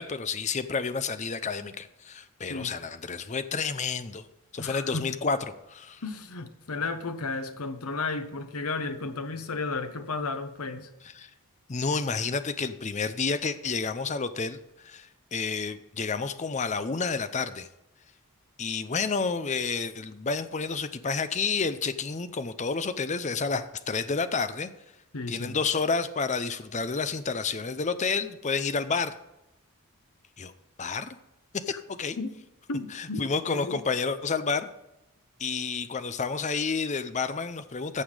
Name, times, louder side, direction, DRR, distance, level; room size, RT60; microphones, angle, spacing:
voice 1, 0.0-4.3 4.5-5.4 5.7-6.0 11.2-11.3 11.7-14.6 14.8-17.7 18.6-24.7 25.3-29.1 30.4-30.5 30.8-31.2 31.5-32.2 32.9-34.7 35.4-38.0, left 4 dB, 30° left, 0.6 m, -30 dB
voice 2, 4.6-5.1 6.0-10.9 25.1-25.6 31.7-31.8 32.2-32.3 32.7-33.8, left 3 dB, 75° left, 1.0 m, -33 dB
15.0 x 5.7 x 5.0 m
head